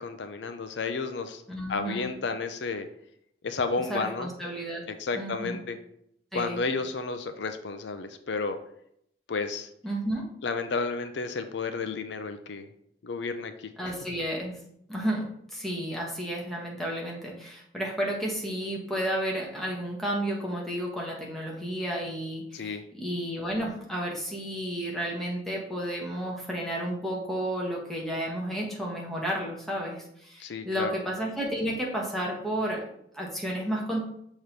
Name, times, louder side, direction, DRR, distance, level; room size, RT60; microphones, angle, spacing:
voice 1, 0.0-1.4 1.7-2.9 3.4-4.3 5.0-5.8 6.3-8.6 9.3-9.7 10.4-12.7 13.0-13.7 22.5-22.8 30.4-30.9, left 4 dB, 75° left, 9 dB, 0.5 m, -32 dB
voice 2, 1.5-2.1 3.9-4.8 5.1-5.6 6.3-6.6 9.8-10.2 13.8-14.5 14.9-34.0, right 1 dB, ahead, -3 dB, 1.3 m, -32 dB
6.5 x 3.0 x 5.2 m, 0.72 s
head